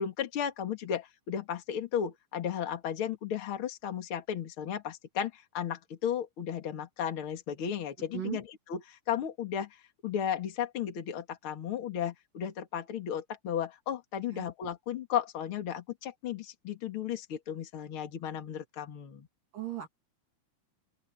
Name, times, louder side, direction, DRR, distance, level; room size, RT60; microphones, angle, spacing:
voice 1, 0.0-8.4 8.7-9.8 10.0-19.3, left 9 dB, 40° left, 2.2 m, -34 dB
voice 2, 19.5-19.9, right 12 dB, 55° right, 4.0 m, -36 dB
open air
omnidirectional pair, 4.8 m